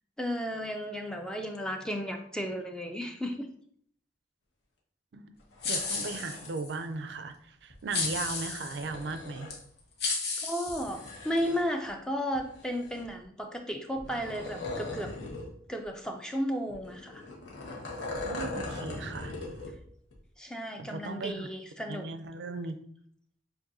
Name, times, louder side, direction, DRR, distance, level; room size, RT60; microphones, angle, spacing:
voice 1, 0.2-3.5 10.4-15.1 15.7-17.2 20.4-22.1, equal, 5° left, 4 dB, 0.3 m, -34 dB
sound 1, 5.4-6.5 7.7-9.6 10.7-11.9 12.3-13.2 14.0-15.5 15.8-15.9 16.7-19.8 20.1-20.2, left 2 dB, 80° left, 1.1 m, -40 dB
sound 2, 5.6-6.7 7.9-8.9 9.5-9.6 10.0-11.4, left 4 dB, 55° left, 0.9 m, -33 dB
voice 2, 5.6-9.5 18.2-19.3 20.8-21.5 21.9-22.8, right 3 dB, 65° right, 9 dB, 0.4 m, -37 dB
7.4 x 2.6 x 2.6 m, 0.65 s
head